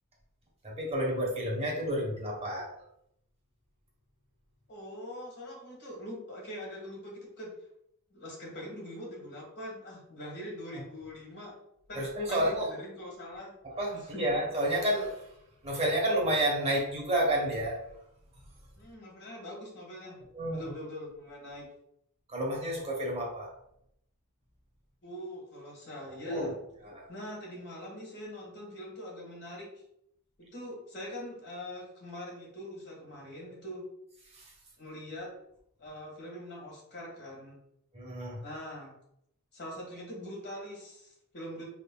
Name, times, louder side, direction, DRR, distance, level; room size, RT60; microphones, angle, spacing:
voice 1, 0.6-2.7 11.9-12.7 13.8-15.3 15.6-17.8 20.3-20.7 22.3-23.5 26.3-26.5 26.8-27.1 34.3-34.5 37.9-38.4, right 1 dB, 30° right, -2 dB, 1.1 m, -30 dB
voice 2, 4.7-7.5 8.1-11.5 11.9-13.5 14.1-14.2 18.7-20.2 20.5-21.7 25.0-26.5 27.1-29.7 30.5-33.8 34.8-35.3 35.8-37.6 38.4-38.9 39.5-41.7, left 1 dB, 50° left, -2 dB, 1.6 m, -43 dB
5.2 x 3.6 x 2.2 m, 0.75 s
head